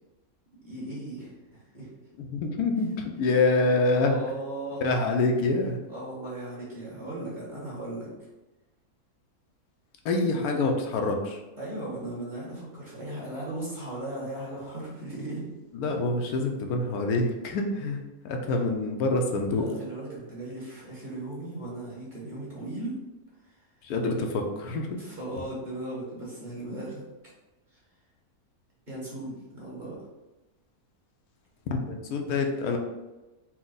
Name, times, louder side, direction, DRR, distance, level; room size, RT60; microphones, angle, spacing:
voice 1, 0.6-1.9 3.1-3.3 3.9-4.8 5.9-8.1 10.2-10.4 11.6-15.4 19.5-23.0 23.4-23.6 24.9-27.0 27.7-27.8 28.9-30.0, right 1 dB, 35° right, -6 dB, 1.6 m, -37 dB
voice 2, 2.3-4.2 4.8-5.8 10.0-11.4 15.7-18.0 18.2-19.6 23.8-25.0 31.7-32.8, left 3 dB, 80° left, 3 dB, 1.1 m, -26 dB
4.4 x 2.2 x 3.9 m, 1.1 s
omnidirectional pair, 1.6 m